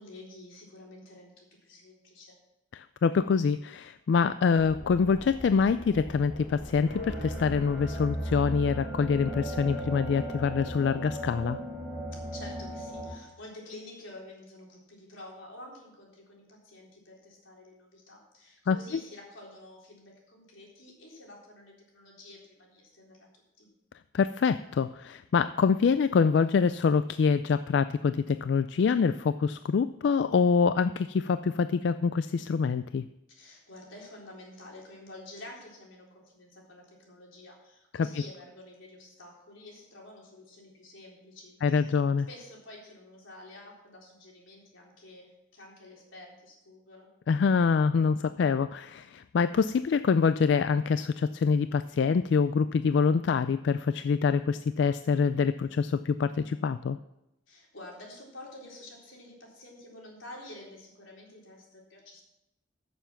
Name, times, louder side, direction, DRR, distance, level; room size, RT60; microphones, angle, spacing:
voice 1, 0.0-2.4 12.1-23.3 23.6-23.7 33.4-42.0 42.3-47.1 57.5-62.2, left 1 dB, 90° left, -2 dB, 3.9 m, -49 dB
voice 2, 2.7-11.6 18.7-19.0 24.1-33.0 38.0-38.1 41.6-42.3 47.3-57.0, left 5 dB, 65° left, 13 dB, 0.3 m, -25 dB
sound 1, 4.6-13.1, equal, ahead, 3.8 m, -37 dB
15.0 x 7.0 x 5.8 m, 0.90 s
head